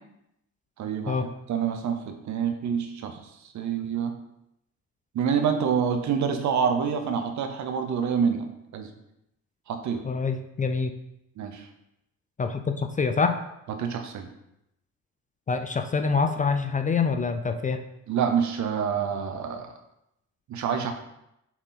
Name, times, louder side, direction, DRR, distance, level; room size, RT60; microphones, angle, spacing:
voice 1, 0.8-4.2 5.1-8.5 8.7-8.9 9.7-10.0 11.4-11.7 13.7-14.3 18.1-19.7 20.5-20.9, right 7 dB, 70° right, 6 dB, 0.9 m, -27 dB
voice 2, 10.0-10.9 12.4-13.4 15.5-17.8, left 5 dB, 25° left, 7 dB, 0.5 m, -26 dB
5.9 x 4.0 x 4.0 m, 0.84 s
cardioid pair, 90°, 30 cm